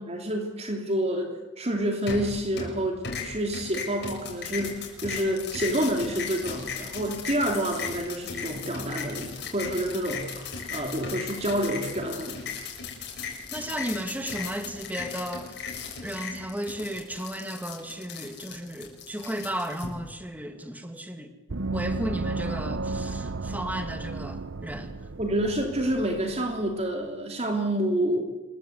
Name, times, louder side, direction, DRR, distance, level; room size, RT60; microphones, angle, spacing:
voice 1, 0.1-12.5 25.2-28.2, right 1 dB, 35° right, 3 dB, 3.0 m, -28 dB
sound 1, 2.1-2.8 3.0-19.9, left 5 dB, 60° left, 6.9 m, -37 dB
voice 2, 13.5-15.6 16.0-21.3 21.7-24.9, equal, 10° right, 6 dB, 2.3 m, -34 dB
Gong, 21.5-26.7, right 3 dB, 70° right, 0.8 m, -33 dB
27.0 x 23.0 x 8.2 m, 1.1 s
head